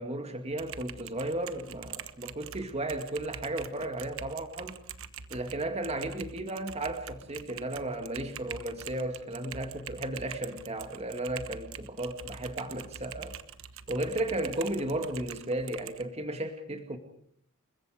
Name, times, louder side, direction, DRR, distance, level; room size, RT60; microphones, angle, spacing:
voice 1, 0.0-4.8 5.3-13.4 13.9-17.0, right 1 dB, 30° right, 6 dB, 2.2 m, -34 dB
Typing, 0.5-16.0, right 8 dB, 65° right, 1.3 m, -45 dB
29.5 x 21.5 x 5.1 m, 0.66 s
head